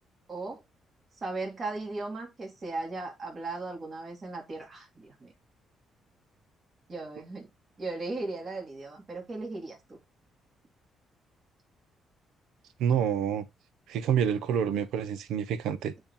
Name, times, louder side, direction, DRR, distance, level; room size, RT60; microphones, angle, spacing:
voice 1, 0.3-0.6 1.2-5.3 6.9-7.5 7.8-10.0, right 3 dB, 40° right, 2.4 m, -37 dB
voice 2, 12.8-13.4 13.9-15.9, right 8 dB, 85° right, 0.8 m, -27 dB
8.7 x 2.9 x 3.7 m
cardioid pair, 90°, 0 cm